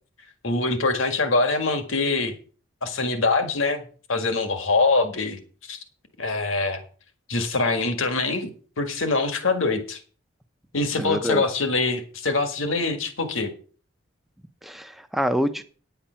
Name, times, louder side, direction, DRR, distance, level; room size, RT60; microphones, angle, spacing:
voice 1, 0.4-2.3 2.8-3.8 4.1-5.4 5.7-5.8 6.2-6.8 7.3-8.5 8.8-10.0 10.7-13.5, left 3 dB, 75° left, 7 dB, 1.7 m, -24 dB
voice 2, 10.9-11.4 14.6-15.6, equal, ahead, 9 dB, 0.7 m, -26 dB
9.8 x 8.8 x 5.7 m, 0.42 s
head